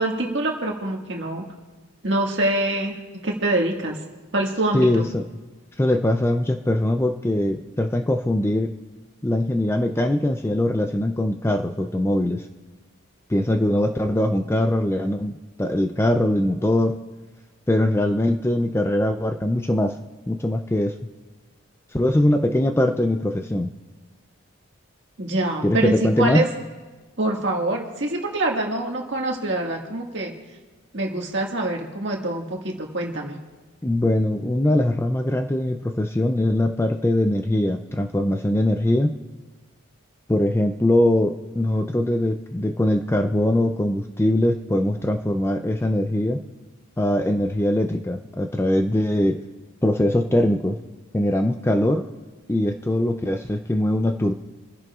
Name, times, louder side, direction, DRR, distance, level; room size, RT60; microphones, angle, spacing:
voice 1, 0.0-1.4 2.0-3.0 3.2-4.0 4.3-5.1 25.2-26.5 27.2-30.3 30.9-33.4, right 2 dB, 55° right, 0 dB, 1.8 m, -25 dB
voice 2, 4.7-5.3 5.8-8.7 9.2-12.5 13.3-17.0 17.7-20.0 20.3-21.0 21.9-23.7 25.6-26.5 33.8-39.2 40.3-46.4 47.0-49.4 49.8-50.8 51.1-52.1 52.5-54.3, left 1 dB, 10° left, 6 dB, 0.4 m, -22 dB
29.5 x 10.5 x 2.4 m, 1.3 s
head